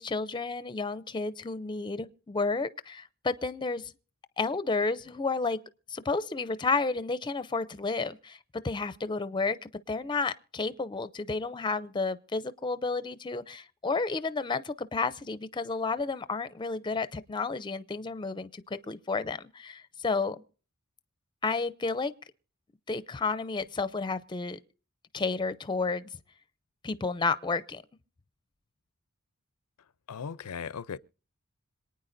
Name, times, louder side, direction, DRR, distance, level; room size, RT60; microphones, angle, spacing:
voice 1, 0.0-3.9 4.4-5.6 5.9-8.4 8.6-20.4 21.4-22.1 22.9-24.6 25.1-26.2 26.8-27.8, left 4 dB, 20° left, 0.5 m, -31 dB
voice 2, 30.1-31.0, left 6 dB, 85° left, 0.5 m, -37 dB
26.5 x 9.4 x 2.6 m
head